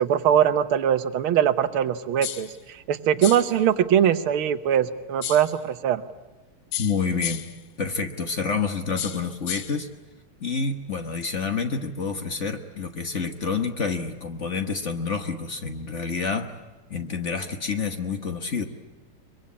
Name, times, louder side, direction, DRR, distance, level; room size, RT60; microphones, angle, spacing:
voice 1, 0.0-6.0, right 9 dB, 90° right, 11 dB, 1.8 m, -22 dB
sound 1, 2.2-2.6 3.2-3.6 5.2-5.6 6.7-7.6 9.0-9.8, left 10 dB, 70° left, 1.7 m, -33 dB
voice 2, 6.8-7.4 7.8-9.9 10.4-16.5 16.9-18.7, left 5 dB, 40° left, 6 dB, 1.3 m, -28 dB
23.5 x 23.5 x 8.6 m, 1.2 s
omnidirectional pair, 2.2 m